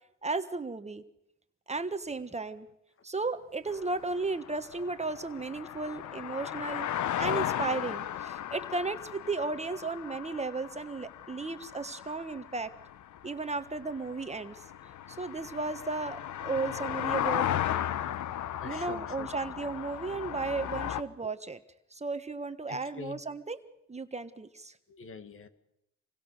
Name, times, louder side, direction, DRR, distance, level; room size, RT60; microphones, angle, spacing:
voice 1, 0.2-1.0 1.7-2.7 3.0-6.9 7.2-12.7 13.2-14.6 15.1-17.5 18.6-21.6 21.9-23.6 23.9-24.7, right 3 dB, 20° right, 9 dB, 1.4 m, -34 dB
sound 1, 3.7-21.0, left 11 dB, 70° left, 1.0 m, -36 dB
voice 2, 18.6-19.7 22.7-23.2 24.9-25.5, left 5 dB, 45° left, 10 dB, 2.0 m, -45 dB
27.5 x 22.5 x 6.6 m, 0.83 s
cardioid pair, 90°, 30 cm